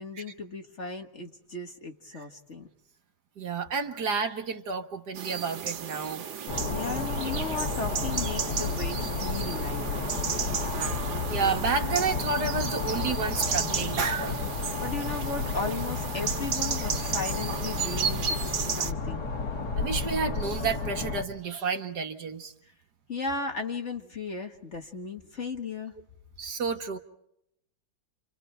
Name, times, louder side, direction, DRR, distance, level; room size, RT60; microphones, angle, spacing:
voice 1, 0.0-2.7 6.7-10.1 14.8-19.2 23.1-25.9, left 3 dB, 40° left, 4 dB, 1.6 m, -36 dB
voice 2, 3.4-6.2 11.3-14.4 19.8-22.5 26.4-27.0, right 5 dB, 55° right, 5 dB, 2.0 m, -30 dB
sound 1, 5.1-18.9, right 7 dB, 75° right, 2.0 m, -34 dB
sound 2, 6.5-21.2, left 4 dB, 55° left, 2.6 m, -32 dB
30.0 x 27.0 x 4.5 m, 0.78 s
omnidirectional pair, 2.1 m